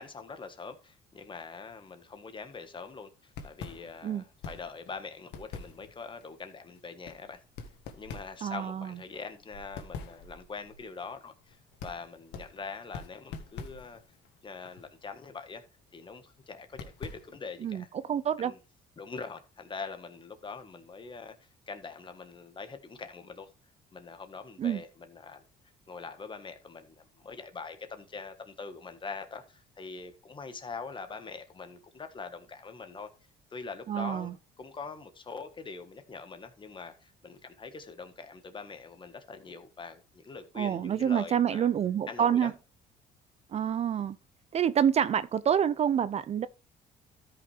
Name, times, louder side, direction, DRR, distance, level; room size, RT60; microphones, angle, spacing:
voice 1, 0.0-7.4 8.0-14.0 14.4-15.6 15.9-17.9 18.4-18.6 19.0-21.3 21.7-23.5 23.9-25.4 25.9-33.1 33.5-41.7 42.1-42.5, left 4 dB, 30° left, 1.5 m, -43 dB
sound 1, 3.2-17.7, left 5 dB, 85° left, 1.6 m, -46 dB
voice 2, 8.4-8.9 17.6-18.5 24.6-24.8 33.9-34.3 40.6-42.5 43.5-44.2 44.5-46.5, right 9 dB, 40° right, 0.4 m, -27 dB
13.0 x 5.7 x 3.4 m
cardioid pair, 110°, 17 cm